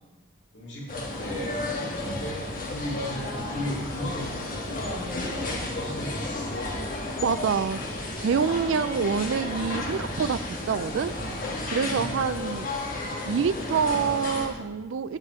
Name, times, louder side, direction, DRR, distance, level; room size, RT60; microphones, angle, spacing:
voice 1, 0.5-6.2, left 1 dB, 65° left, -5 dB, 2.4 m, -35 dB
sound 1, 0.9-14.5, left 2 dB, 45° left, 1.4 m, -33 dB
voice 2, 7.2-7.8 8.2-11.1 11.7-12.7 13.2-15.2, right 6 dB, 75° right, 13 dB, 0.4 m, -26 dB
7.7 x 7.5 x 5.0 m, 1.1 s
head